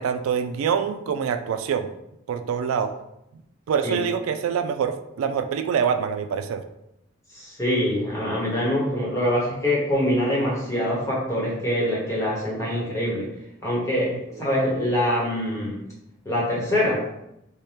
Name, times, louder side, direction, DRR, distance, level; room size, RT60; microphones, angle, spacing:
voice 1, 0.0-1.9 2.3-2.9 3.7-6.6 14.3-14.5, right 7 dB, 90° right, 10 dB, 0.3 m, -25 dB
voice 2, 7.3-13.3 13.6-15.8 16.2-17.1, left 1 dB, 15° left, -5 dB, 1.0 m, -24 dB
3.3 x 2.1 x 4.2 m, 0.83 s
head